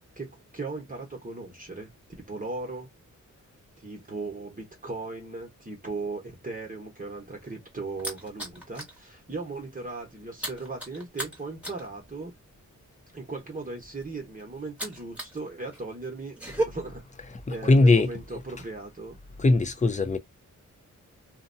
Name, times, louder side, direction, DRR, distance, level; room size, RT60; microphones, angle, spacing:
voice 1, 0.2-1.9 2.2-2.9 3.8-12.3 13.1-17.0 17.5-19.1, right 3 dB, 25° right, 1.0 m, -37 dB
sound 1, 7.3-9.0 9.3-9.6 9.8-15.4 15.7-16.6, right 1 dB, 5° right, 1.2 m, -36 dB
voice 2, 17.5-18.1 19.4-20.2, left 2 dB, 20° left, 0.5 m, -20 dB
2.6 x 2.2 x 2.5 m
wide cardioid pair, 100°, 33 cm